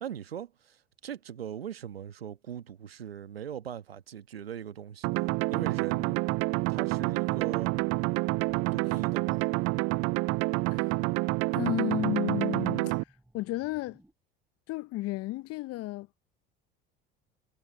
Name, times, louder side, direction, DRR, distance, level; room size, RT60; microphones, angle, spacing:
voice 1, 0.0-6.2 6.7-7.7 8.7-9.5, right 9 dB, 90° right, 1.3 m, -40 dB
sound 1, 5.0-13.0, right 25 dB, 55° right, 0.4 m, -28 dB
sound 2, 6.3-14.1, right 1 dB, 5° right, 6.6 m, -60 dB
voice 2, 11.5-12.9 13.3-14.0 14.7-16.1, left 18 dB, 55° left, 0.8 m, -33 dB
hypercardioid pair, 65°, 29 cm